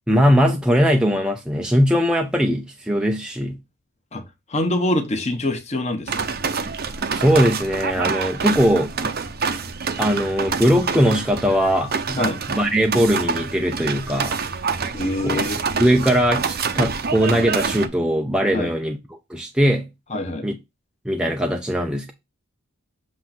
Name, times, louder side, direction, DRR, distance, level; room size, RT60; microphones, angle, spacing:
voice 1, 0.1-3.6 7.1-9.1 10.0-12.2 12.5-14.4 15.2-15.4 15.8-19.9 20.4-20.6 21.1-22.1, equal, 5° right, 0.5 m, -20 dB
voice 2, 4.5-6.3 12.2-12.4 14.9-15.6 18.5-18.7 20.1-20.5, left 1 dB, 30° left, 1.2 m, -24 dB
sound 1, 6.1-17.9, right 5 dB, 45° right, 0.7 m, -26 dB
7.5 x 2.6 x 5.8 m
head